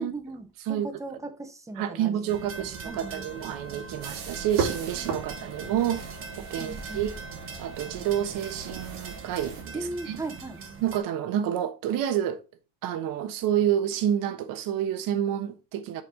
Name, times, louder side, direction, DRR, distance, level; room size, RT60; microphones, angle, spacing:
voice 1, 0.0-3.3 5.4-5.5 6.6-7.1 9.7-10.6, right 2 dB, 10° right, 0.9 m, -38 dB
voice 2, 1.8-6.0 6.4-7.1 7.6-9.8 10.1-10.2 10.8-12.4 12.8-16.0, right 10 dB, 55° right, 1.1 m, -29 dB
sound 1, 2.3-11.0, right 5 dB, 30° right, 1.1 m, -41 dB
sound 2, 4.0-9.6, right 6 dB, 85° right, 3.5 m, -36 dB
7.6 x 5.2 x 3.7 m
cardioid pair, 145°, 40 cm